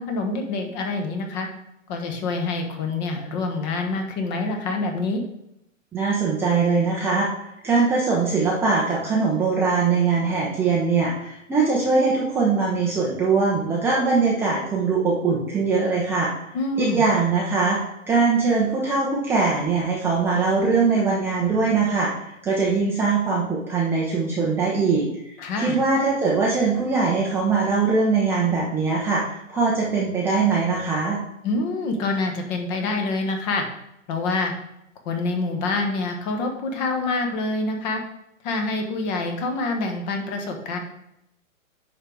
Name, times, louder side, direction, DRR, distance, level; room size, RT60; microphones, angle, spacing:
voice 1, 0.0-1.5 1.9-5.2 16.5-17.0 25.4-25.8 31.4-33.7 34.1-34.5 35.0-38.0 38.4-40.8, left 3 dB, 35° left, 4 dB, 1.3 m, -26 dB
voice 2, 5.9-7.3 7.6-16.3 16.8-25.1 25.6-31.2, right 4 dB, 5° right, -5 dB, 0.6 m, -21 dB
10.0 x 4.0 x 4.6 m, 0.83 s
hypercardioid pair, 150°, 40 cm